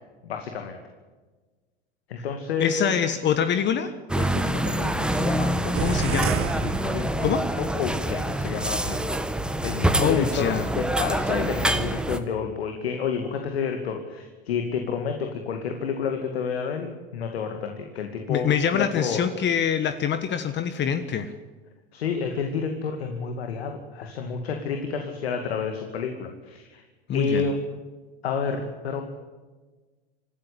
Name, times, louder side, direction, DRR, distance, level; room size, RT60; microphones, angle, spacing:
voice 1, 0.2-0.8 2.1-3.0 4.2-6.1 6.6-7.3 7.6-9.2 9.6-19.2 21.9-26.8 27.1-27.8 28.2-29.0, left 6 dB, 80° left, 5 dB, 2.4 m, -30 dB
voice 2, 2.6-3.9 5.8-6.4 7.2-7.4 10.0-10.7 18.3-21.3 27.1-27.5, left 8 dB, 35° left, 10 dB, 1.5 m, -25 dB
sound 1, 4.1-12.2, right 1 dB, 5° right, 1.4 m, -26 dB
sound 2, 5.8-7.6, right 9 dB, 45° right, 2.0 m, -31 dB
26.5 x 13.0 x 8.5 m, 1.3 s
hypercardioid pair, 90°, 31 cm